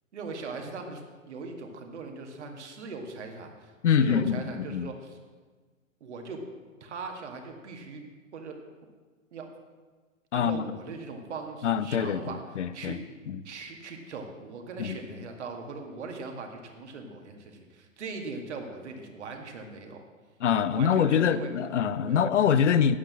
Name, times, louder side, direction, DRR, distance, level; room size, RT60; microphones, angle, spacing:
voice 1, 0.1-1.0 1.3-5.2 6.0-6.4 6.8-8.0 8.3-8.6 9.3-9.5 10.3-12.4 12.7-13.0 13.4-20.0 20.7-21.5 22.0-22.2, right 4 dB, 55° right, 3 dB, 2.1 m, -40 dB
voice 2, 3.8-4.4 4.7-4.9 10.3-10.7 11.6-13.0 13.3-13.4 14.8-15.0 20.4-23.0, left 8 dB, 60° left, 15 dB, 0.7 m, -24 dB
9.2 x 8.5 x 7.4 m, 1.4 s
figure-of-eight pair, 110°, 40 cm